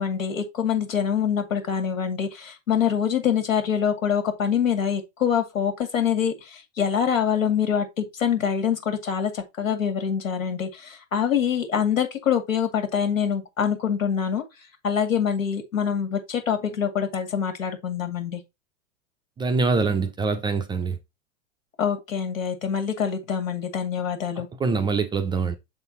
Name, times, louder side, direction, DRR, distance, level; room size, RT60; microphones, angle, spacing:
voice 1, 0.0-14.4 14.8-18.4 21.8-24.5, left 8 dB, 85° left, 2.1 m, -25 dB
voice 2, 19.4-21.0 24.6-25.5, right 4 dB, 15° right, 0.4 m, -24 dB
6.9 x 4.0 x 3.9 m
hypercardioid pair, 110°, 39 cm